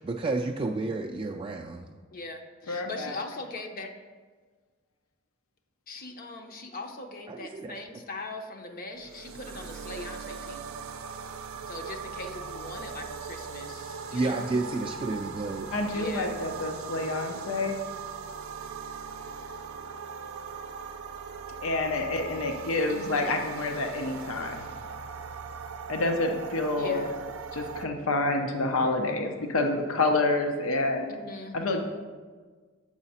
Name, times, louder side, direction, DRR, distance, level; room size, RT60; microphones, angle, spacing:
voice 1, 0.0-1.9 7.3-7.8 14.1-15.7 28.8-28.9, right 3 dB, 25° right, 2 dB, 0.3 m, -31 dB
voice 2, 2.1-3.9 5.9-10.7 11.7-14.5 15.9-16.4 22.9-23.4 26.8-27.2 31.1-31.8, left 2 dB, 45° left, 4 dB, 0.6 m, -40 dB
voice 3, 2.7-3.1 15.7-17.8 21.6-24.7 25.9-27.0 27.5-31.1 31.5-31.8, left 2 dB, 90° left, 4 dB, 0.7 m, -28 dB
sound 1, 8.9-27.9, right 5 dB, 85° right, 0.5 m, -40 dB
7.7 x 4.8 x 4.2 m, 1.4 s
head